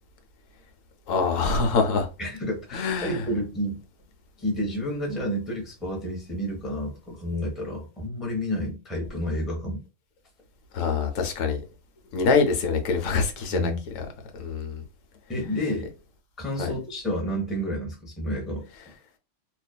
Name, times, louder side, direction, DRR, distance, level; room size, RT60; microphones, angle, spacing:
voice 1, 1.1-2.1 2.7-3.3 10.7-11.6 12.1-13.7 14.3-14.8 16.6-16.7, left 4 dB, 85° left, 1.0 m, -24 dB
voice 2, 2.2-3.8 4.4-9.8 13.5-13.8 15.3-15.9 16.4-18.6, equal, ahead, 0.5 m, -30 dB
2.5 x 2.3 x 2.2 m
omnidirectional pair, 1.3 m